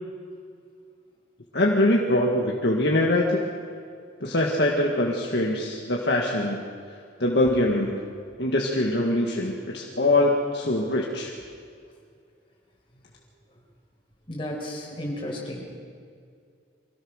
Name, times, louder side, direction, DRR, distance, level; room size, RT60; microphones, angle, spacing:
voice 1, 1.5-3.4 4.2-6.6 7.2-8.0 8.4-11.3, left 1 dB, 60° left, -2 dB, 1.8 m, -23 dB
voice 2, 14.3-15.7, left 1 dB, 25° left, -2 dB, 5.3 m, -33 dB
24.5 x 16.5 x 6.5 m, 2.2 s
head